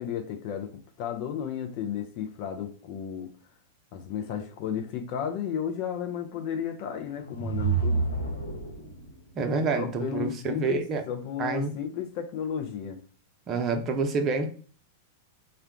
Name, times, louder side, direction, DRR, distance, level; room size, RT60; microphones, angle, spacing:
voice 1, 0.0-3.3 3.9-8.0 9.7-13.0, left 8 dB, 50° left, 0.5 m, -33 dB
sound 1, 7.1-9.1, right 4 dB, 85° left, 0.8 m, -28 dB
voice 2, 9.4-11.0 11.4-11.7 13.5-14.5, right 4 dB, 30° right, 0.7 m, -27 dB
3.6 x 2.2 x 3.6 m
figure-of-eight pair, 95°, 0 cm